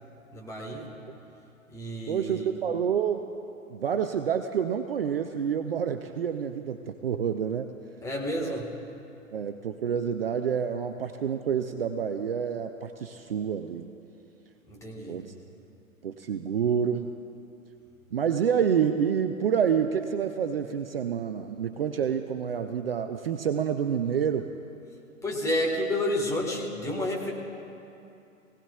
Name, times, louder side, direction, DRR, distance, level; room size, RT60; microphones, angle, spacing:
voice 1, 0.3-0.9 1.7-2.5 8.0-8.7 14.7-15.2 25.2-27.3, left 1 dB, 5° left, -2 dB, 1.5 m, -30 dB
voice 2, 2.1-3.3 3.7-7.7 8.4-8.6 9.3-13.9 15.0-15.3 16.0-17.1 18.1-24.5, right 7 dB, 45° right, 8 dB, 0.6 m, -28 dB
24.0 x 17.5 x 2.3 m, 2.8 s
figure-of-eight pair, 120°, 41 cm